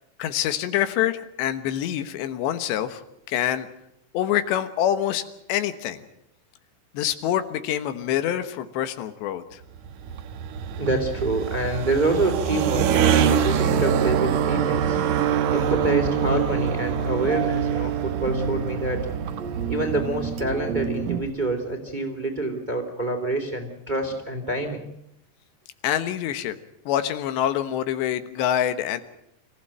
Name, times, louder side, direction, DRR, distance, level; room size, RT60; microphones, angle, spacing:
voice 1, 0.2-3.0 3.3-3.7 4.1-5.2 5.5-6.0 6.9-9.6 25.8-26.6 26.9-29.0, left 11 dB, 80° left, 10 dB, 3.4 m, -25 dB
sound 1, 9.8-21.4, right 8 dB, 85° right, 1.6 m, -25 dB
voice 2, 10.7-15.0 15.5-19.0 19.7-24.8, right 2 dB, 10° right, 3 dB, 2.6 m, -26 dB
sound 2, 13.8-21.2, right 7 dB, 60° right, 1.8 m, -30 dB
26.5 x 15.0 x 9.0 m, 0.79 s
omnidirectional pair, 5.0 m